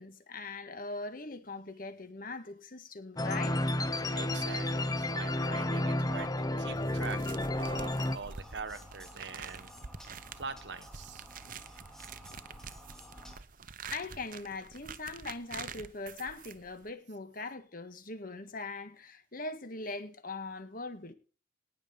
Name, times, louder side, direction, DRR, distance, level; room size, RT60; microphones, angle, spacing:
voice 1, 0.0-3.6 13.9-21.1, left 3 dB, 50° left, 1.8 m, -41 dB
sound 1, 3.2-8.2, left 1 dB, 20° left, 0.8 m, -31 dB
voice 2, 4.1-6.3 6.6-7.2 7.5-9.7 10.3-11.3, right 5 dB, 75° right, 1.2 m, -43 dB
sound 2, 6.7-16.9, right 6 dB, 50° right, 0.9 m, -47 dB
sound 3, 8.0-13.4, equal, 5° left, 2.5 m, -52 dB
19.0 x 6.9 x 5.3 m
head